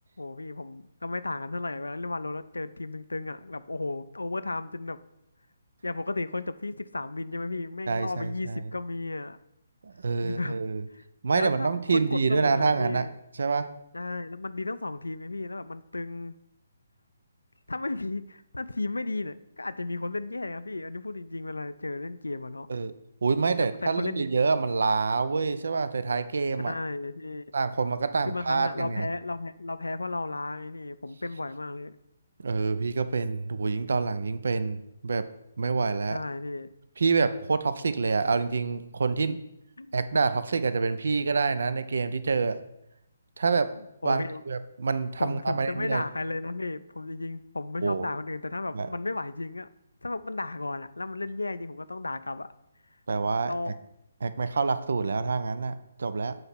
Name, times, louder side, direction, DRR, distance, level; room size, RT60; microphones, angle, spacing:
voice 1, 0.2-5.0 5.8-9.4 10.2-10.6 11.0-11.1 11.3-13.1 13.9-16.3 17.7-22.7 23.6-24.3 26.6-27.5 28.2-31.9 36.1-36.7 39.3-39.4 39.8-40.0 44.0-44.4 45.2-49.7 50.0-52.5 53.4-53.8, left 2 dB, 80° left, 14 dB, 0.4 m, -34 dB
voice 2, 7.9-8.6 9.8-10.8 11.2-13.0 13.4-13.7 22.7-22.9 23.2-26.7 27.5-29.1 32.4-35.3 35.6-36.2 37.0-39.4 39.9-42.6 43.4-43.7 44.0-46.0 47.8-48.1 48.7-48.9 53.1-53.5 54.2-56.4, right 4 dB, 65° right, 12 dB, 0.4 m, -27 dB
7.7 x 2.9 x 5.8 m, 0.84 s
figure-of-eight pair, 140°, 0 cm